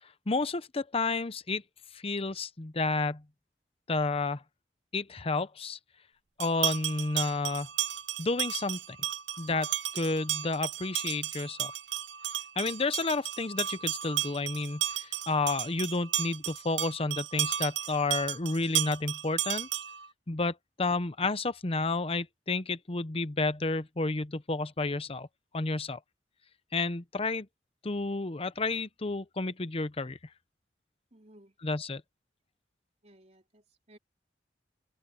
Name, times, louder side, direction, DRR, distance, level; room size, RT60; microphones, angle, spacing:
voice 1, 0.3-1.6 1.9-3.2 3.9-4.4 4.9-5.8 6.4-7.7 8.2-9.0 9.4-11.7 12.6-19.7 20.3-25.3 25.5-26.0 26.7-27.5 27.8-30.2 31.6-32.0, left 3 dB, 35° left, 0.8 m, -31 dB
sound 1, 6.4-20.1, right 12 dB, 85° right, 0.8 m, -34 dB
voice 2, 31.1-31.5 33.0-34.0, right 1 dB, 40° right, 3.6 m, -58 dB
head